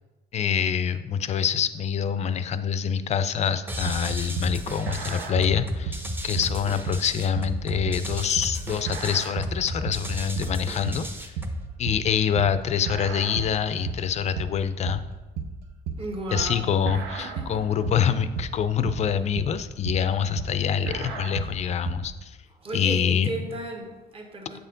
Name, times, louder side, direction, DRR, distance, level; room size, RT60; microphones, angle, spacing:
voice 1, 0.3-11.3 11.8-15.0 16.3-22.4 22.7-23.3, left 8 dB, 40° left, 12 dB, 0.4 m, -26 dB
sound 1, 3.7-11.7, equal, 10° right, 0.7 m, -35 dB
sound 2, 3.9-22.1, right 5 dB, 85° right, 0.7 m, -34 dB
voice 2, 16.0-16.7 17.2-17.8 22.5-24.6, right 2 dB, 35° right, 2 dB, 1.2 m, -35 dB
8.0 x 4.3 x 3.9 m, 1.2 s
cardioid pair, 110°, 17 cm